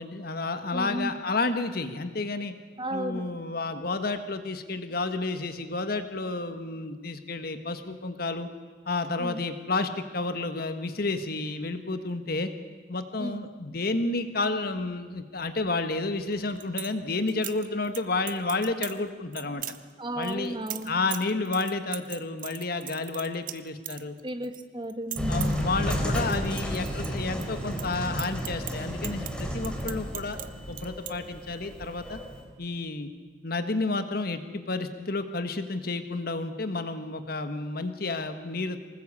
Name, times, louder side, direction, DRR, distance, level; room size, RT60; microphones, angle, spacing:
voice 1, 0.0-2.5 2.9-8.5 8.8-12.5 12.9-19.6 20.1-20.6 20.8-24.2 25.3-30.4 30.7-32.2 32.6-33.1 33.4-38.8, left 3 dB, 55° left, 9 dB, 1.5 m, -31 dB
voice 2, 0.7-1.1 2.8-3.2 9.2-9.4 13.2-13.4 20.0-20.9 24.2-25.6, right 1 dB, 25° right, 7 dB, 1.6 m, -33 dB
sound 1, 16.3-16.9 17.3-18.0 18.3-19.0 19.3-19.8 20.2-24.6 24.8-25.6 25.9-27.5 27.7-30.5 30.7-31.1, right 13 dB, 50° right, 1.1 m, -38 dB
sound 2, 25.2-32.4, equal, 5° left, 3.9 m, -32 dB
24.0 x 20.0 x 8.4 m, 1.4 s
head